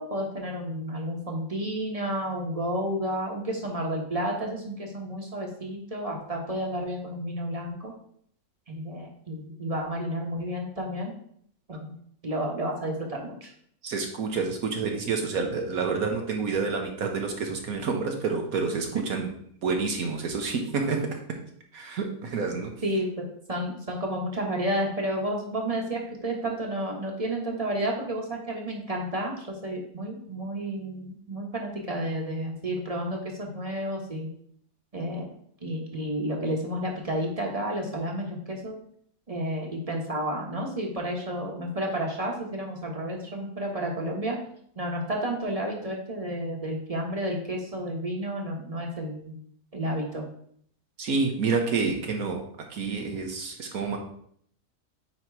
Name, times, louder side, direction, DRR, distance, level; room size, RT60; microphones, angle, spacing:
voice 1, 0.0-7.9 8.7-11.1 11.7-11.9 12.2-13.5 22.8-34.3 34.9-35.3 35.6-38.7 39.3-44.4 44.8-49.3 49.7-50.3, right 1 dB, 25° right, 0 dB, 1.1 m, -31 dB
voice 2, 13.8-19.3 19.6-21.4 21.7-22.7 51.0-52.4 52.7-54.0, right 4 dB, 65° right, 3 dB, 1.3 m, -28 dB
8.7 x 3.0 x 4.6 m, 0.65 s
omnidirectional pair, 1.7 m